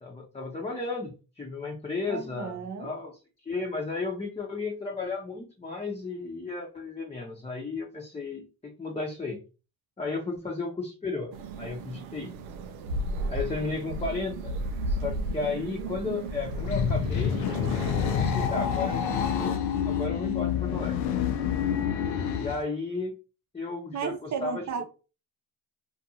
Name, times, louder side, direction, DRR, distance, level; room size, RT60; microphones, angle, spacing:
voice 1, 0.0-3.2 3.5-9.4 10.0-12.3 13.3-14.5 14.8-17.5 18.1-19.6 19.9-21.0 22.4-23.1 23.5-24.8, left 3 dB, 15° left, 0.8 m, -34 dB
voice 2, 2.1-2.9 23.9-24.8, right 6 dB, 40° right, 0.8 m, -33 dB
sound 1, 11.3-19.5, right 2 dB, 85° right, 0.6 m, -35 dB
sound 2, 16.4-22.6, left 8 dB, 70° left, 0.6 m, -28 dB
2.5 x 2.5 x 2.7 m
supercardioid pair, 65°, 44 cm